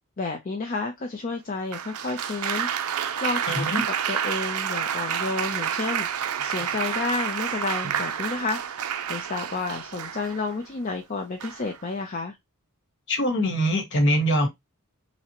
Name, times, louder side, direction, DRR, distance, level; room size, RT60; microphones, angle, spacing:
voice 1, 0.2-3.7 4.1-6.1 6.4-12.4, left 3 dB, 40° left, 0.5 m, -31 dB
Applause, 1.7-10.6 11.4-11.8, right 8 dB, 85° right, 0.5 m, -29 dB
voice 2, 3.5-3.8 13.1-14.5, equal, 55° left, 1.2 m, -23 dB
5.7 x 2.1 x 2.8 m
head